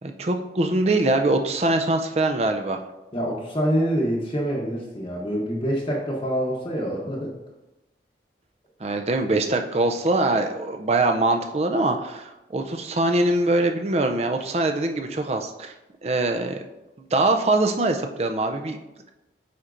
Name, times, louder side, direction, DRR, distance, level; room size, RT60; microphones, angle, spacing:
voice 1, 0.0-2.8 8.8-15.7 16.0-16.6 17.1-18.8, right 2 dB, 35° right, 5 dB, 0.5 m, -23 dB
voice 2, 3.1-7.3, equal, 30° left, -3 dB, 0.9 m, -26 dB
9.4 x 4.2 x 2.6 m, 1.0 s
head